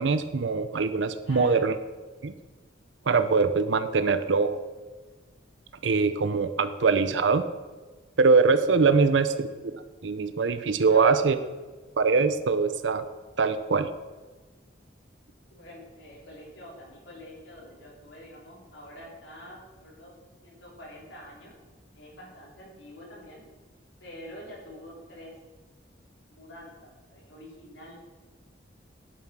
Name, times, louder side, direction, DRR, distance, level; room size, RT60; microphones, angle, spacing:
voice 1, 0.0-1.8 2.2-2.3 3.1-4.6 5.8-7.4 8.2-9.5 9.7-11.3 12.0-13.0 13.4-13.9, right 4 dB, 80° right, 11 dB, 0.6 m, -23 dB
voice 2, 1.2-1.6 4.0-4.2 8.9-9.2 10.8-11.3 15.5-20.1 20.4-21.5 21.9-23.4 24.0-25.3 26.3-28.0, equal, 85° left, -4 dB, 4.0 m, -46 dB
11.0 x 7.3 x 6.1 m, 1.3 s
head